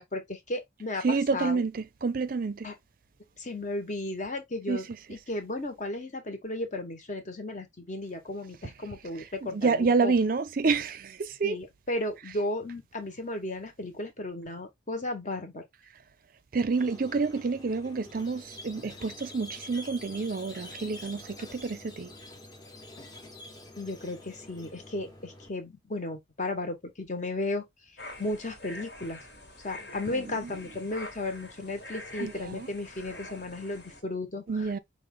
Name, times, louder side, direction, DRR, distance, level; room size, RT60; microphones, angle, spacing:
voice 1, 0.0-1.6 2.6-2.7 3.4-10.1 11.4-15.6 23.8-27.6 28.2-29.2 29.6-34.4, left 2 dB, 40° left, 1.2 m, -34 dB
voice 2, 1.0-2.7 4.7-5.0 9.4-11.6 16.5-22.1 30.1-30.5 32.2-32.7 34.5-34.8, right 4 dB, 50° right, 0.5 m, -28 dB
Squeak, 16.7-25.5, left 1 dB, 20° left, 1.0 m, -47 dB
sound 1, 28.0-34.0, left 2 dB, 60° left, 1.5 m, -45 dB
5.3 x 2.4 x 3.5 m
head